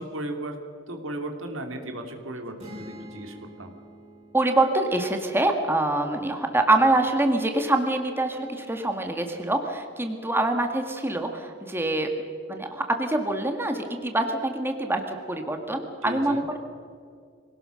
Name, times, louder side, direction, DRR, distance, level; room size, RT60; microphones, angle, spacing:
voice 1, 0.0-3.7 16.0-16.4, right 1 dB, 85° right, 5 dB, 2.8 m, -36 dB
sound 1, 2.6-6.3, right 1 dB, 30° right, 6.7 m, -47 dB
voice 2, 4.3-12.1 12.5-16.6, right 2 dB, 10° right, 4 dB, 1.9 m, -25 dB
24.5 x 18.0 x 6.5 m, 2.2 s
head